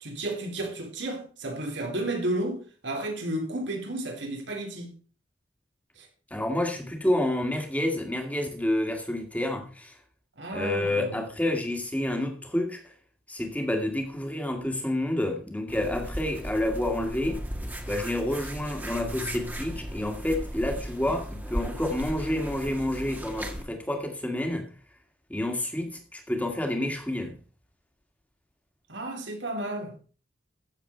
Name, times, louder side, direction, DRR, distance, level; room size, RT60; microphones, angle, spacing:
voice 1, 0.0-4.9 6.0-6.1 10.4-11.2 28.9-29.9, right 1 dB, 80° right, 4.1 m, -32 dB
voice 2, 6.3-10.0 10.5-12.9 13.3-17.4 17.9-24.7 25.3-27.4, left 1 dB, 10° left, 2.2 m, -29 dB
sound 1, 15.7-23.6, equal, 10° right, 1.8 m, -36 dB
15.0 x 7.4 x 4.6 m
head